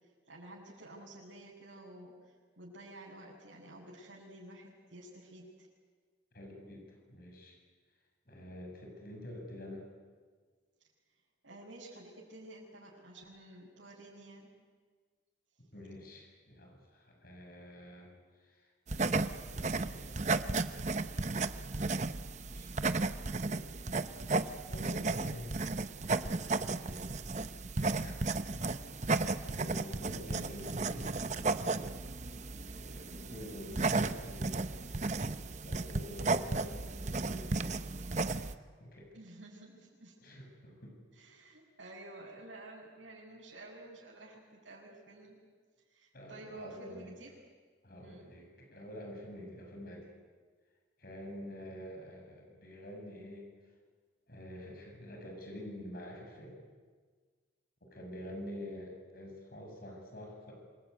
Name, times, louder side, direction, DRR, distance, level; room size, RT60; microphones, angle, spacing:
voice 1, 0.3-5.7 11.4-14.5 33.0-33.3 39.1-40.1 41.1-45.4 45.9-47.3 48.0-48.3, right 2 dB, 90° right, -7 dB, 6.5 m, -51 dB
voice 2, 6.3-7.5 8.3-9.9 15.7-18.1 18.4-20.3 20.7-21.1 22.5-22.7 23.3-23.8 24.7-25.7 26.0-27.1 28.0-28.8 29.1-31.1 32.7-34.8 35.7-37.7 38.1-38.3 38.8-39.1 40.2-41.0 46.1-47.1 47.8-50.1 51.0-53.4 54.3-56.6 57.8-60.5, left 1 dB, 50° left, 1 dB, 7.1 m, -47 dB
sound 1, 18.9-38.5, right 3 dB, 40° right, 0.8 m, -34 dB
26.5 x 22.0 x 9.5 m, 1.5 s
head